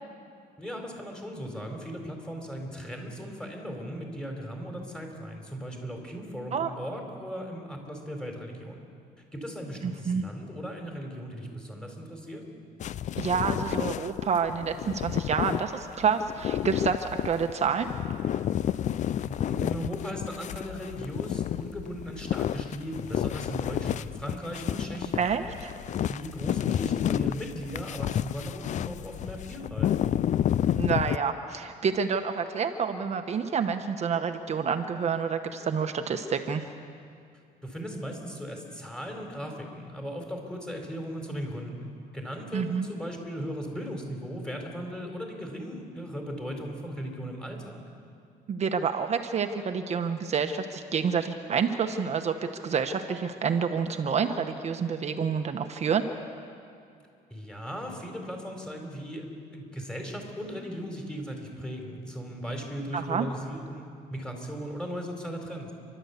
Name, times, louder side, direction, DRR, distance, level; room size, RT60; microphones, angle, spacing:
voice 1, 0.6-8.8 9.3-12.4 19.2-25.3 26.1-30.0 37.6-47.8 57.3-65.7, equal, 5° left, 2 dB, 4.3 m, -37 dB
voice 2, 9.8-10.2 13.2-17.9 25.2-25.7 30.7-36.7 42.5-42.9 48.5-56.0 62.9-63.3, right 6 dB, 40° right, 7 dB, 1.1 m, -28 dB
sound 1, 12.8-31.2, left 10 dB, 45° left, 0.4 m, -30 dB
29.0 x 12.5 x 8.4 m, 2.4 s
cardioid pair, 110°, 17 cm